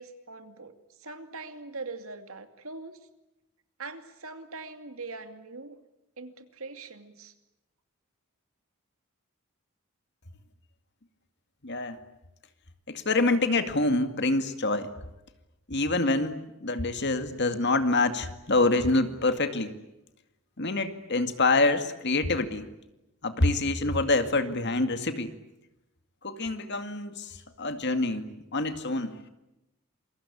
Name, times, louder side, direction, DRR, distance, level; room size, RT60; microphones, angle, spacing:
voice 1, 0.0-3.0 3.8-5.8 6.2-7.3, right 3 dB, 70° right, 8 dB, 2.6 m, -42 dB
voice 2, 11.6-12.0 12.9-14.9 15.7-19.8 20.6-22.7 23.2-25.3 26.2-29.2, left 2 dB, 50° left, 9 dB, 2.1 m, -26 dB
28.0 x 23.5 x 8.6 m, 0.94 s
head